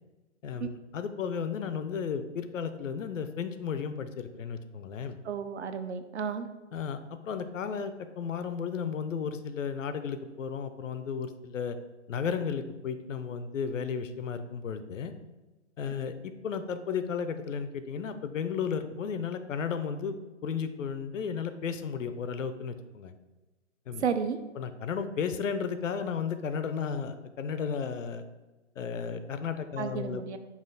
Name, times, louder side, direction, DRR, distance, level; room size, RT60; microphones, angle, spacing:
voice 1, 0.4-5.2 6.7-11.8 12.1-15.1 15.8-20.2 20.4-23.1 23.9-24.0 24.6-28.2 28.8-30.2, left 6 dB, 80° left, 10 dB, 0.6 m, -34 dB
voice 2, 5.2-6.5 24.0-24.4 29.8-30.4, right 6 dB, 60° right, 9 dB, 0.5 m, -32 dB
5.6 x 2.4 x 3.9 m, 1.2 s
hypercardioid pair, 175°, 38 cm